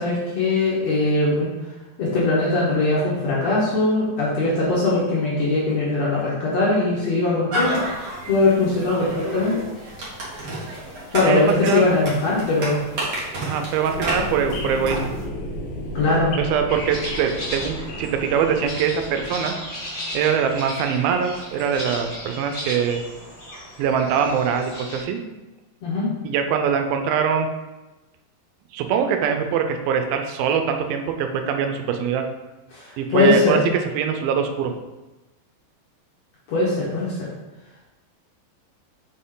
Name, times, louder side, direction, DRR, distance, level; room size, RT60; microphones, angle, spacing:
voice 1, 0.0-1.5 2.0-7.8 8.3-9.6 11.1-12.8 16.0-16.4 25.8-26.1 32.7-33.6 36.5-37.3, left 2 dB, 60° left, -7 dB, 1.8 m, -21 dB
sound 1, 7.5-15.2, right 1 dB, 60° right, 1.0 m, -31 dB
voice 2, 11.2-11.8 13.4-15.1 16.4-19.5 20.1-23.0 23.8-25.2 26.2-27.5 28.7-32.2 33.0-33.6 33.9-34.7, right 7 dB, 90° right, 6 dB, 2.5 m, -23 dB
sound 2, 13.9-19.3, left 1 dB, 90° left, 2.9 m, -33 dB
sound 3, 16.7-25.0, left 1 dB, 30° left, 1.3 m, -35 dB
6.0 x 4.2 x 3.8 m, 1.1 s
omnidirectional pair, 4.2 m